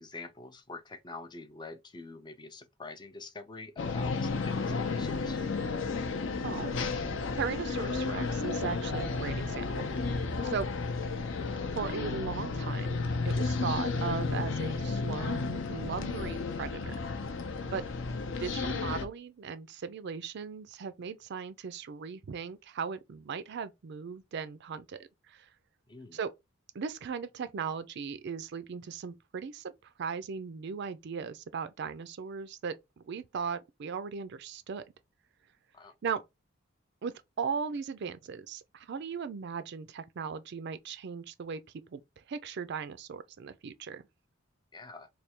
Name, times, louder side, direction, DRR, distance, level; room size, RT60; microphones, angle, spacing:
voice 1, 0.0-5.4 25.9-26.2 35.7-35.9 44.7-45.1, left 3 dB, 20° left, 0.4 m, -46 dB
sound 1, 3.8-19.0, left 4 dB, 65° left, 0.6 m, -32 dB
voice 2, 6.4-7.0 7.3-9.8 10.4-10.7 11.7-16.9 17.7-17.8 18.4-25.0 25.3-25.5 26.1-26.3 26.7-34.8 36.0-36.2 37.0-41.6 41.9-42.0 42.3-44.0, right 6 dB, 55° right, 0.4 m, -37 dB
3.3 x 2.2 x 4.2 m
head